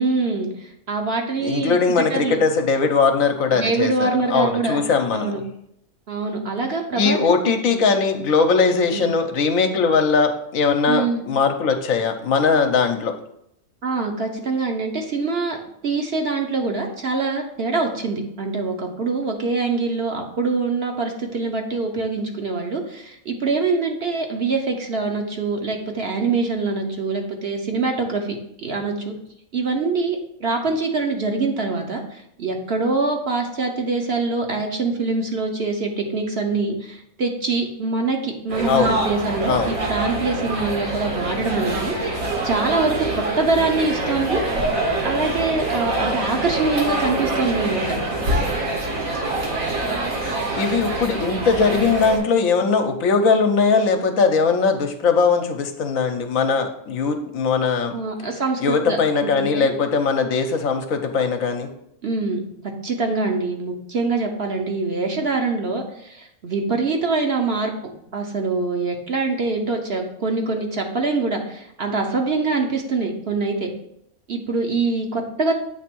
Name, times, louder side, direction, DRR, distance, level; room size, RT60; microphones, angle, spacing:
voice 1, 0.0-2.4 3.5-4.8 5.1-5.4 6.1-7.8 8.9-9.2 10.9-11.2 13.8-15.6 15.8-28.4 28.6-29.1 29.5-44.4 45.0-48.0 57.9-59.0 59.4-59.7 62.0-62.4 62.8-67.7 68.1-73.7 74.3-75.5, right 3 dB, 50° right, 3 dB, 1.0 m, -24 dB
voice 2, 1.4-5.3 7.0-13.2 38.7-39.0 39.5-39.7 50.6-58.0 58.6-61.7, left 5 dB, 70° left, 6 dB, 1.1 m, -20 dB
sound 1, 38.5-52.2, right 2 dB, 70° right, 2.0 m, -25 dB
8.1 x 3.4 x 6.1 m, 0.75 s
omnidirectional pair, 1.5 m